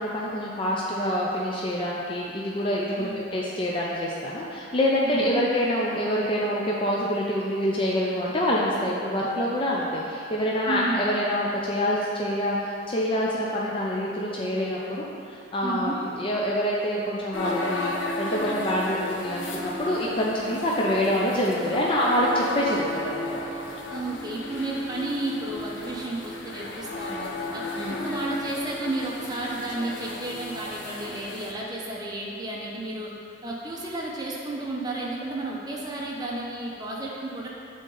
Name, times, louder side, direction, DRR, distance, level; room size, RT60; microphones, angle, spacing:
voice 1, 0.0-23.4 27.8-28.0, equal, 30° left, -4 dB, 0.5 m, -26 dB
voice 2, 5.0-5.4 10.7-11.1 15.6-16.0 23.9-27.6 28.0-33.1 33.4-37.5, right 2 dB, 20° right, -4 dB, 0.6 m, -32 dB
sound 1, 17.3-31.5, left 1 dB, 75° left, 0.7 m, -34 dB
8.0 x 3.8 x 3.8 m, 2.6 s
head